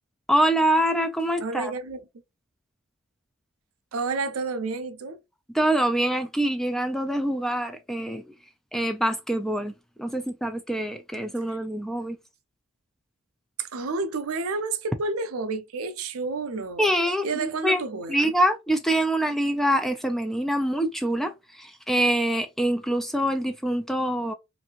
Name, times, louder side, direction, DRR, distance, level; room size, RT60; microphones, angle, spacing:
voice 1, 0.3-1.7 5.5-8.3 8.7-9.7 10.0-12.2 16.8-17.8 18.1-24.3, right 1 dB, ahead, 0.3 m, -25 dB
voice 2, 1.4-2.0 3.9-5.2 11.5-11.6 13.6-17.0 17.2-18.3, right 3 dB, 80° right, 0.5 m, -30 dB
2.7 x 2.6 x 2.8 m
head